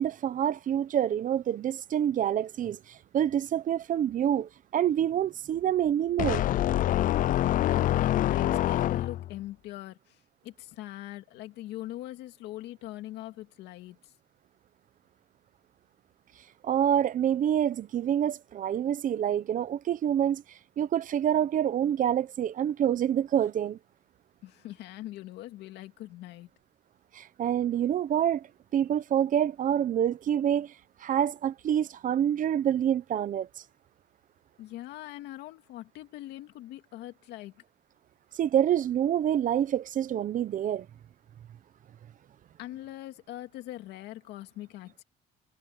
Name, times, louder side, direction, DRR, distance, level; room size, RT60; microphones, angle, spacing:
voice 1, 0.0-6.4 16.6-20.4 20.8-23.8 27.1-28.5 28.7-30.7 31.0-33.5 38.3-40.9, right 10 dB, 50° right, 0.9 m, -27 dB
sound 1, 6.2-9.4, left 13 dB, 55° left, 0.4 m, -26 dB
voice 2, 7.6-14.1 24.4-26.5 34.6-37.6 42.6-45.0, left 15 dB, 85° left, 2.4 m, -42 dB
cardioid pair, 110°, 17 cm